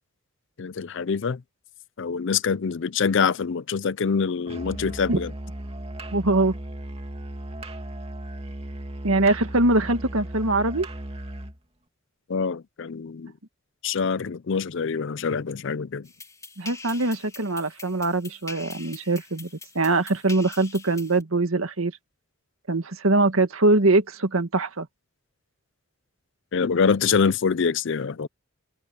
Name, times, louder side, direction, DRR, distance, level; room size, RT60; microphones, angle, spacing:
voice 1, 0.6-1.4 2.0-5.3 12.3-13.3 13.8-16.1 26.5-28.3, left 5 dB, 60° left, 0.5 m, -25 dB
Musical instrument, 4.5-11.6, equal, 30° right, 2.5 m, -36 dB
voice 2, 6.1-6.6 9.0-10.9 16.6-19.5 19.8-21.9 22.7-24.9, right 2 dB, 90° right, 1.9 m, -22 dB
sound 1, 16.0-21.2, left 3 dB, 15° left, 3.4 m, -43 dB
head